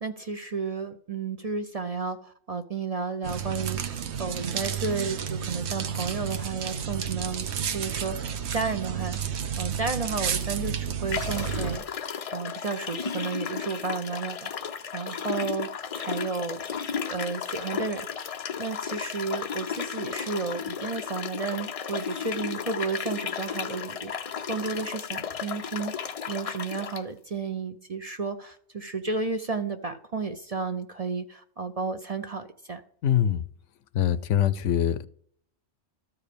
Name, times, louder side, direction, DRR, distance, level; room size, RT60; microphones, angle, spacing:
voice 1, 0.0-9.2 9.6-11.8 12.3-15.7 16.0-16.6 17.1-32.8, right 4 dB, 40° right, 0.6 m, -32 dB
sound 1, 3.2-11.8, right 8 dB, 70° right, 1.0 m, -31 dB
sound 2, 10.3-10.4 11.1-27.0, left 7 dB, 60° left, 0.4 m, -34 dB
voice 2, 33.0-33.5 33.9-35.1, left 10 dB, 85° left, 1.0 m, -23 dB
13.5 x 4.8 x 5.0 m
omnidirectional pair, 1.2 m